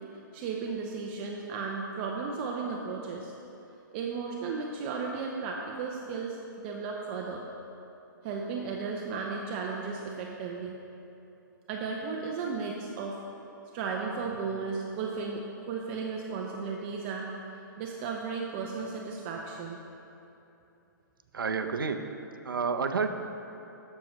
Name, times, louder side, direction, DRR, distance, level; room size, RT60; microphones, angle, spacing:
voice 1, 0.3-3.3 3.9-6.4 6.6-7.4 8.2-10.8 11.7-13.2 13.7-17.3 17.8-19.8, right 5 dB, 35° right, 0 dB, 0.6 m, -34 dB
voice 2, 21.3-22.0 22.4-23.1, right 5 dB, 85° right, 7 dB, 0.6 m, -29 dB
12.5 x 6.5 x 3.1 m, 2.9 s
hypercardioid pair, 140°, 11 cm